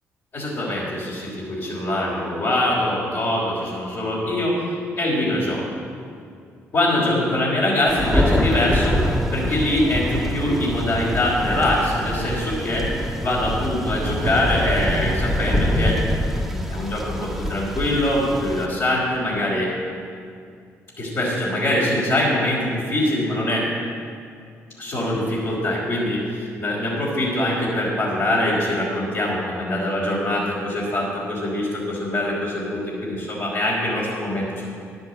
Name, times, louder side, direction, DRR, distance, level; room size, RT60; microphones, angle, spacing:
voice 1, 0.3-5.6 6.7-12.9 13.2-16.0 16.5-19.7 21.0-23.7 24.8-34.7, left 1 dB, 55° left, -7 dB, 3.5 m, -23 dB
Thunder, 7.9-18.7, equal, ahead, 1.5 m, -25 dB
10.5 x 7.8 x 7.8 m, 2.3 s
supercardioid pair, 60°, 6 cm